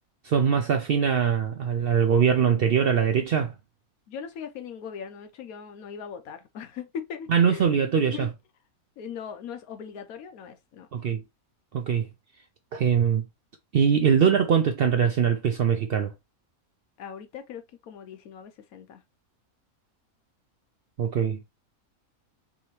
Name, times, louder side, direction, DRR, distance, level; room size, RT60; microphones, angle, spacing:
voice 1, 0.2-3.5 7.3-8.3 10.9-11.2 11.7-12.1 12.7-13.2 13.7-16.1 21.0-21.4, right 7 dB, 75° right, 0.5 m, -22 dB
voice 2, 4.1-8.3 9.0-10.9 17.0-19.0, left 7 dB, 80° left, 1.2 m, -39 dB
4.8 x 2.8 x 3.0 m
omnidirectional pair, 1.5 m